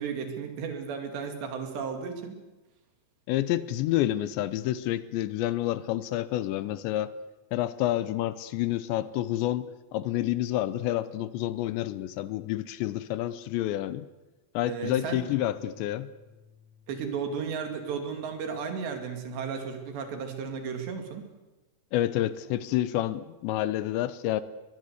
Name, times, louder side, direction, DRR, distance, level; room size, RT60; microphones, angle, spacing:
voice 1, 0.0-2.4 14.6-15.2 16.9-21.2, right 6 dB, 70° right, 5 dB, 4.6 m, -34 dB
voice 2, 3.3-7.1 7.5-14.1 14.5-16.1 21.9-24.4, left 14 dB, 80° left, 15 dB, 3.0 m, -29 dB
Bass guitar, 14.8-21.1, left 7 dB, 40° right, 5.6 m, -58 dB
22.0 x 20.5 x 8.1 m, 1.1 s
omnidirectional pair, 5.2 m